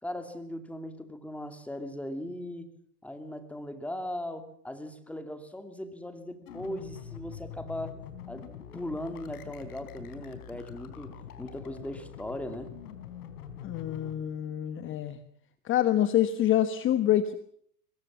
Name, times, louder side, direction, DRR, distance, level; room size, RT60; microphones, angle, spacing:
voice 1, 0.0-2.7 3.0-7.9 8.3-12.7, left 1 dB, 5° left, 8 dB, 2.5 m, -38 dB
sound 1, 6.5-14.1, left 9 dB, 70° left, 4.3 m, -44 dB
voice 2, 13.6-15.2 15.6-17.3, left 11 dB, 25° left, 11 dB, 1.2 m, -26 dB
24.0 x 21.5 x 7.5 m, 0.65 s
hypercardioid pair, 125°, 47 cm